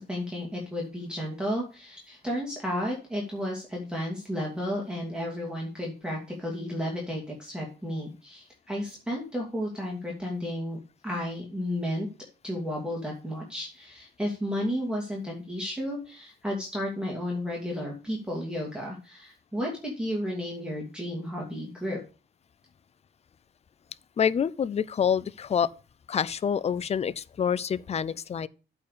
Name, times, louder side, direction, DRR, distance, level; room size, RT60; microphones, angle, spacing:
voice 1, 0.0-12.1 12.4-22.0, equal, 5° right, 2.5 m, -33 dB
voice 2, 24.2-25.7 26.1-28.5, left 7 dB, 30° left, 0.4 m, -27 dB
8.4 x 4.6 x 6.7 m
cardioid pair, 100°, 20 cm